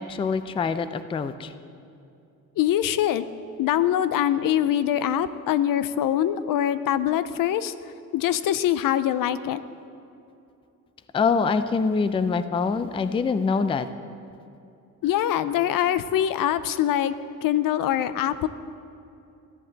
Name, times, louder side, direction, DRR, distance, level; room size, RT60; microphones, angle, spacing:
voice 1, 0.0-1.5 11.1-13.9, left 5 dB, 15° left, 12 dB, 0.3 m, -24 dB
voice 2, 2.6-3.3 3.6-7.7 8.1-9.6 15.0-17.1 17.4-18.5, left 11 dB, 75° left, 14 dB, 0.5 m, -23 dB
13.5 x 10.0 x 4.0 m, 2.7 s
cardioid pair, 120°, 34 cm